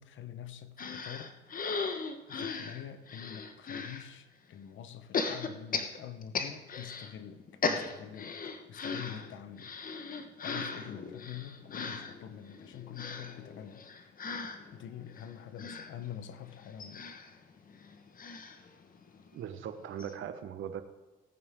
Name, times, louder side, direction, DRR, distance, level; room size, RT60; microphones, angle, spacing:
voice 1, 0.0-1.4 2.3-13.9 14.7-17.1, left 9 dB, 75° left, 0.9 m, -46 dB
sound 1, 0.8-4.0 5.1-7.1 7.4-19.3 19.7-19.8 20.0-20.1, left 4 dB, 45° left, 1.2 m, -38 dB
voice 2, 19.3-20.8, right 9 dB, 75° right, 1.1 m, -39 dB
18.0 x 8.7 x 3.6 m
cardioid pair, 90°, 20 cm